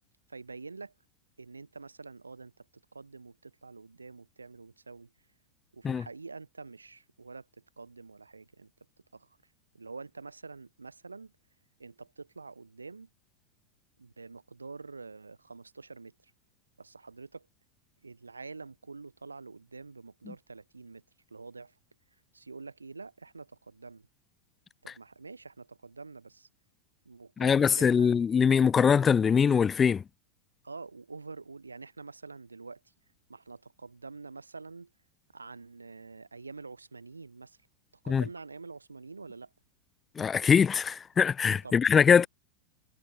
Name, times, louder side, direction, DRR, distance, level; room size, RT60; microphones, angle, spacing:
voice 1, 0.3-0.9 1.4-5.1 5.7-8.7 9.1-9.4 9.7-11.3 11.8-13.1 14.0-16.3 16.8-17.5 18.0-21.8 22.3-24.1 24.8-26.5 27.0-28.1 30.6-32.9 33.3-34.9 35.3-37.6 38.0-39.5 41.6-41.8, right 4 dB, 80° right, 4.5 m, -46 dB
voice 2, 27.4-30.0 38.1-38.2 40.2-42.3, left 6 dB, 20° left, 1.1 m, -22 dB
figure-of-eight pair, 90°, 0 cm